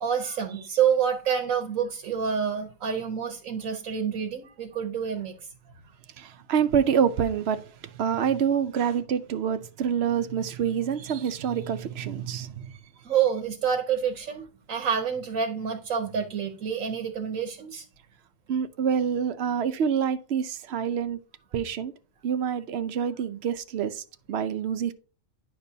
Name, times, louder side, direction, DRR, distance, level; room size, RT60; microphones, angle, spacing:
voice 1, 0.0-5.3 8.8-8.9 13.0-17.8, right 7 dB, 85° right, 1.3 m, -28 dB
voice 2, 6.2-12.7 18.5-21.2 21.5-21.9 22.2-24.9, right 8 dB, 60° right, 0.8 m, -27 dB
10.0 x 5.9 x 2.7 m
omnidirectional pair, 1.4 m